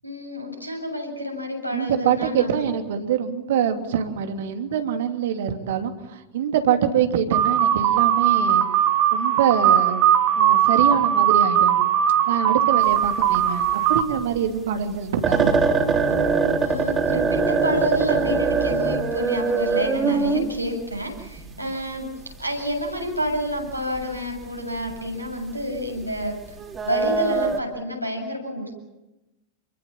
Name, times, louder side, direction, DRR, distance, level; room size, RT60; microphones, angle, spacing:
voice 1, 0.0-2.7 16.6-22.1 22.4-26.4 26.8-28.7, equal, 90° right, 0 dB, 7.9 m, -29 dB
voice 2, 1.7-8.6 9.1-10.1 10.4-11.8 12.3-15.5 21.6-21.7, right 8 dB, 55° right, 6 dB, 3.0 m, -24 dB
sound 1, 7.3-14.0, right 10 dB, 40° right, 2.4 m, -19 dB
sound 2, 12.9-13.7 14.0-14.1 14.5-14.6 14.9-15.0 15.2-21.6 22.7-22.8 23.1-23.4 23.7-24.0 24.4-24.5 24.9-25.3 25.8-27.6, right 4 dB, 20° right, 4.2 m, -22 dB
29.0 x 23.0 x 7.5 m, 0.97 s
figure-of-eight pair, 90°, 0 cm